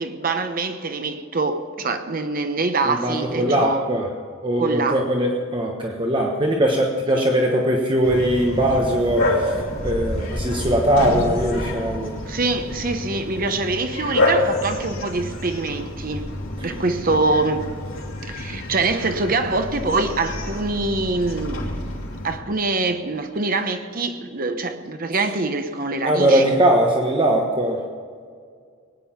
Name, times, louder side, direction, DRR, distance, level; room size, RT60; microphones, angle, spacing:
voice 1, 0.0-3.9 4.6-5.0 7.1-7.3 12.3-16.3 16.6-17.7 18.2-22.0 22.2-26.5, right 3 dB, 45° right, 0.9 m, -24 dB
voice 2, 2.9-4.1 4.4-12.1 16.6-16.7 26.0-27.8, right 1 dB, 25° right, 1.3 m, -20 dB
Bark, 8.0-22.4, left 1 dB, 80° left, 3.1 m, -28 dB
20.5 x 9.9 x 5.8 m
head